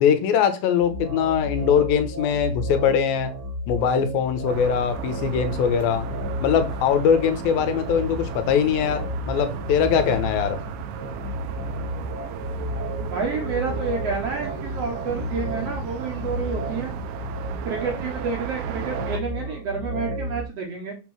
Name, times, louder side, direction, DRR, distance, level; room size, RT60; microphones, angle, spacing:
voice 1, 0.0-3.3 3.7-6.1 6.4-10.6, left 7 dB, 80° left, 2.7 m, -21 dB
sound 1, 0.8-20.4, equal, 10° left, 0.6 m, -33 dB
sound 2, 4.5-19.2, right 9 dB, 75° right, 2.3 m, -35 dB
voice 2, 13.0-17.0 17.6-20.9, right 5 dB, 60° right, 1.7 m, -29 dB
6.7 x 3.7 x 6.2 m
omnidirectional pair, 4.2 m